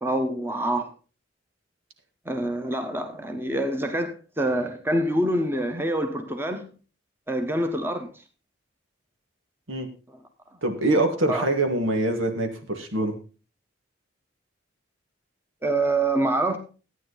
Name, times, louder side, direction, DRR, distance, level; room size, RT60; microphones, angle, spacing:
voice 1, 0.0-0.9 2.3-6.6 7.3-8.1 11.3-11.5 15.6-16.6, right 1 dB, 10° right, 1.2 m, -26 dB
voice 2, 10.6-13.1, right 2 dB, 90° right, 2.2 m, -24 dB
14.0 x 9.2 x 4.1 m
head